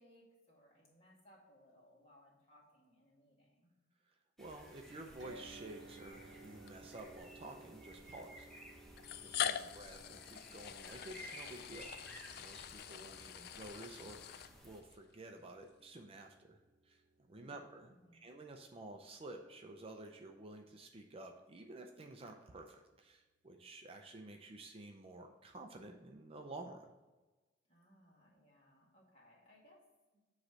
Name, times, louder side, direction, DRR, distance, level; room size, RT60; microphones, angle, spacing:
voice 1, 0.0-3.7 9.5-10.0 17.3-18.2 27.7-29.9 30.1-30.2, equal, 35° left, -4 dB, 2.2 m, -66 dB
voice 2, 4.1-8.5 9.2-11.9 12.3-17.9 18.2-26.9, right 2 dB, 30° right, 4 dB, 0.5 m, -52 dB
sound 1, 4.4-14.8, equal, ahead, 0.9 m, -56 dB
sound 2, 5.2-19.3, right 2 dB, 70° right, 1.0 m, -61 dB
sound 3, 5.5-5.6 6.7-6.8 7.9-8.0 9.0-15.0, left 9 dB, 55° left, 0.4 m, -43 dB
7.7 x 3.2 x 6.1 m, 1.2 s
head